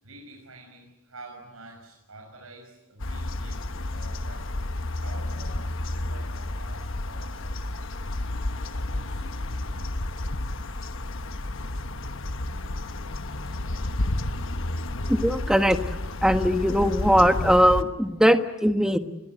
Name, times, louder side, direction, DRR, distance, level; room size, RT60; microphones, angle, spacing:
voice 1, 0.0-4.5 5.0-7.9 8.3-9.3, right 2 dB, 85° right, 1 dB, 5.9 m, -48 dB
sound 1, 3.0-17.8, left 1 dB, 65° left, 1.2 m, -31 dB
voice 2, 15.0-15.8 16.2-19.0, equal, 5° right, 7 dB, 1.4 m, -20 dB
29.5 x 22.0 x 8.0 m, 0.91 s
head